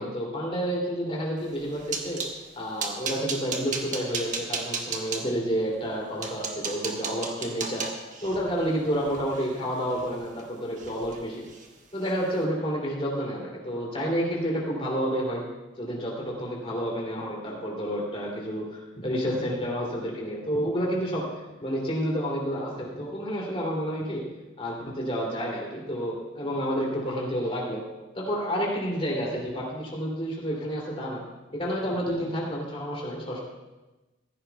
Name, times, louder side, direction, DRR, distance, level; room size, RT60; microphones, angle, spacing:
voice 1, 0.0-2.2 2.5-7.9 8.2-11.4 11.9-15.4 15.8-21.3 21.6-24.2 24.6-27.8 28.1-31.2 31.5-33.4, equal, 30° left, -3 dB, 2.9 m, -30 dB
sound 1, 1.5-2.4 2.8-5.2 5.8-5.9 6.2-10.4 10.8-11.2 11.4-11.7 12.1-12.2, right 4 dB, 40° right, 1.3 m, -34 dB
15.5 x 14.5 x 2.3 m, 1.1 s
head